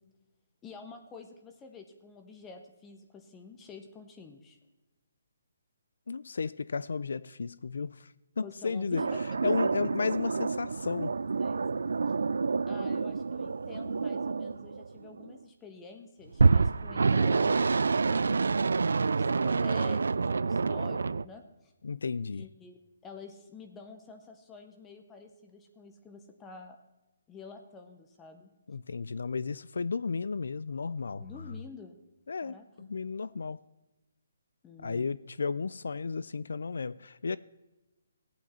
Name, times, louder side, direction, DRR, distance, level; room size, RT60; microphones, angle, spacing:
voice 1, 0.6-4.6 8.4-9.7 11.4-11.9 12.7-18.4 19.0-21.7 22.3-26.8 27.3-28.5 31.2-32.0 32.4-32.9 34.6-35.1, left 4 dB, 10° left, 0.6 m, -49 dB
voice 2, 6.1-8.1 8.4-9.0 9.4-11.1 21.8-22.5 28.7-31.3 32.3-33.6 34.8-37.4, left 4 dB, 75° left, 0.3 m, -33 dB
sound 1, 9.0-15.3 16.3-21.3, right 4 dB, 80° right, 0.3 m, -28 dB
15.5 x 8.6 x 4.3 m
hypercardioid pair, 170°, 0 cm